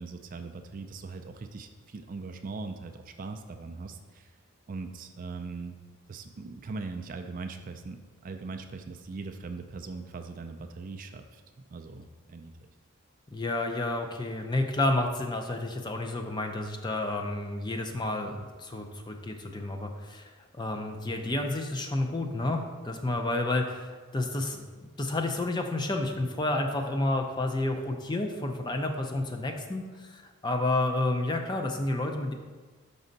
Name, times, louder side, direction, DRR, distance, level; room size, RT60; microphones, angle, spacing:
voice 1, 0.0-4.3 4.7-5.8 6.1-11.4 11.7-12.5, right 4 dB, 40° right, 6 dB, 0.3 m, -40 dB
voice 2, 13.3-24.6 25.0-32.3, left 2 dB, 20° left, 4 dB, 0.5 m, -30 dB
6.1 x 5.4 x 3.9 m, 1.4 s
head